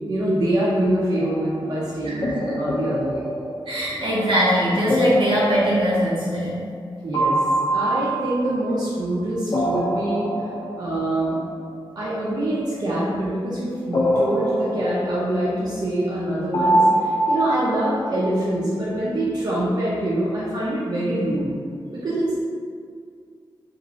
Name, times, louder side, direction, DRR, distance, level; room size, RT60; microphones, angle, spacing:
voice 1, 0.0-3.3 7.0-7.4 7.7-10.3 10.8-11.4 11.9-21.5 21.9-22.4, right 1 dB, 50° right, -8 dB, 0.5 m, -25 dB
sound 1, 1.2-1.7 2.2-4.3 4.9-6.9 7.1-9.1 9.5-11.3 13.9-15.8 16.5-18.5, right 1 dB, 45° left, 0.3 m, -24 dB
voice 2, 2.0-2.4 3.7-6.6, equal, 80° right, -7 dB, 0.9 m, -21 dB
3.0 x 2.4 x 2.5 m, 2.1 s
wide cardioid pair, 145°, 9 cm